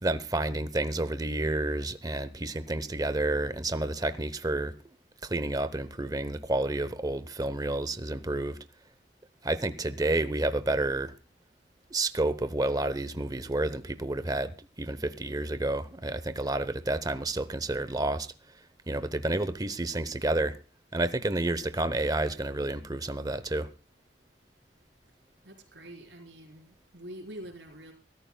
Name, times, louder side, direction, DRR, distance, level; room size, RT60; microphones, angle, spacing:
voice 1, 0.0-4.7 5.2-8.6 9.4-11.1 11.9-18.3 18.9-20.6 20.9-23.7, right 2 dB, 20° right, 0.8 m, -30 dB
voice 2, 25.4-27.9, right 1 dB, 70° right, 4.2 m, -45 dB
24.5 x 13.5 x 2.3 m
head